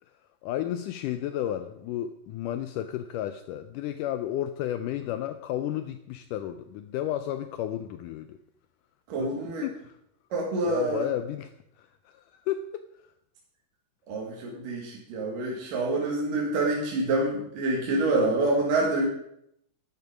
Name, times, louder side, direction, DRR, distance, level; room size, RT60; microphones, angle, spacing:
voice 1, 0.4-8.4 9.2-9.3 9.6-10.0 10.6-11.5 11.8-12.8, left 12 dB, 90° left, 10 dB, 1.8 m, -32 dB
voice 2, 9.1-9.6 10.3-11.1 14.1-19.0, right 2 dB, 65° right, -3 dB, 3.4 m, -27 dB
12.0 x 10.0 x 5.0 m, 0.76 s
omnidirectional pair, 4.4 m